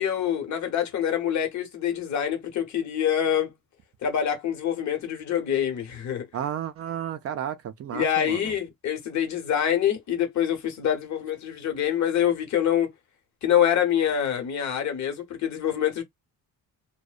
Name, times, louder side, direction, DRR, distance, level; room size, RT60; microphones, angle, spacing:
voice 1, 0.0-3.5 4.0-6.2 7.9-12.9 13.4-16.0, left 9 dB, 55° left, 0.9 m, -25 dB
voice 2, 6.3-8.5, right 9 dB, 45° right, 0.4 m, -32 dB
2.6 x 2.1 x 2.3 m
cardioid pair, 170°, 35 cm